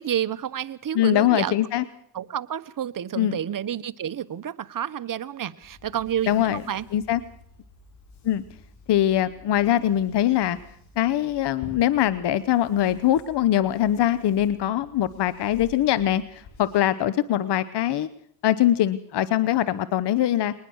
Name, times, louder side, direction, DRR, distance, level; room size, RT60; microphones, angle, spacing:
voice 1, 0.0-1.6 2.1-6.8, right 10 dB, 45° right, 12 dB, 1.2 m, -30 dB
voice 2, 0.9-1.8 3.2-3.4 6.3-6.6 6.9-7.2 8.2-8.4 8.9-10.6 11.0-18.1 18.4-20.5, left 12 dB, 60° left, 16 dB, 1.0 m, -22 dB
sound 1, 5.6-16.8, left 3 dB, 80° left, 7.1 m, -49 dB
22.0 x 20.0 x 6.4 m, 0.68 s
cardioid pair, 85°, 46 cm